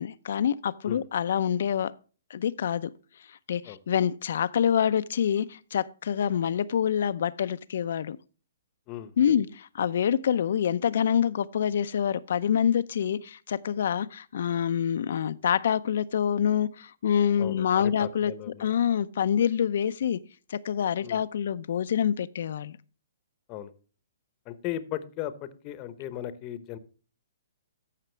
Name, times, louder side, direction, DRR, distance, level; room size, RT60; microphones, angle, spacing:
voice 1, 0.0-1.9 2.3-2.9 3.5-8.2 9.2-18.3 18.6-20.2 20.5-22.8, left 8 dB, 65° left, 0.5 m, -26 dB
voice 2, 8.9-9.3 17.4-18.7 21.0-21.3 23.5-23.7 24.5-26.8, left 12 dB, 30° left, 0.9 m, -37 dB
14.0 x 5.9 x 3.2 m
hypercardioid pair, 155°, 0 cm